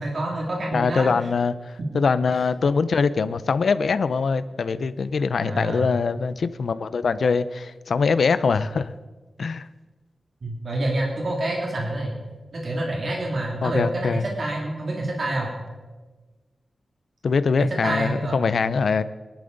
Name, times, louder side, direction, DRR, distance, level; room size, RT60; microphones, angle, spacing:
voice 1, 0.0-1.1 5.4-5.9 10.4-12.1 12.5-15.5 17.8-18.4, right 1 dB, 50° right, -2 dB, 2.8 m, -27 dB
voice 2, 0.7-8.9 9.4-9.7 13.6-14.2 17.2-19.0, left 5 dB, 70° left, 14 dB, 0.6 m, -23 dB
22.5 x 11.5 x 4.0 m, 1.3 s
wide cardioid pair, 135°, 0 cm